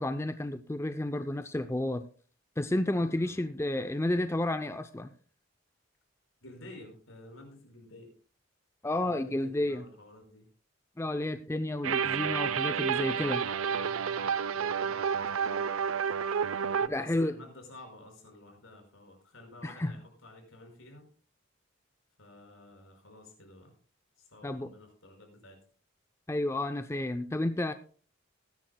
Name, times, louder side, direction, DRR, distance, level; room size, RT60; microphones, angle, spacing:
voice 1, 0.0-2.1 2.6-5.1 8.8-9.9 11.0-13.4 16.9-17.3 19.6-19.9 24.4-24.7 26.3-27.7, left 1 dB, 15° left, 9 dB, 0.4 m, -31 dB
voice 2, 6.4-8.1 9.0-10.4 13.6-15.8 16.8-21.1 22.2-23.7 24.2-25.6, left 2 dB, 80° left, 2 dB, 5.4 m, -51 dB
sound 1, 11.8-16.9, right 7 dB, 85° right, 0.5 m, -30 dB
21.0 x 10.0 x 2.2 m, 0.42 s
head